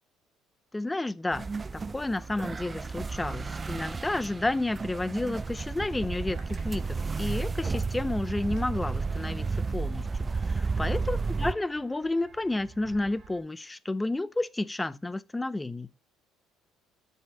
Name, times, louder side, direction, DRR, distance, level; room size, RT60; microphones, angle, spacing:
voice 1, 0.7-1.5 1.7-15.9, left 2 dB, 15° left, 0.6 m, -31 dB
sound 1, 1.3-11.5, right 4 dB, 25° right, 0.5 m, -32 dB
sound 2, 6.1-13.4, right 5 dB, 55° right, 2.3 m, -50 dB
6.7 x 6.5 x 3.9 m
supercardioid pair, 75°, 0 cm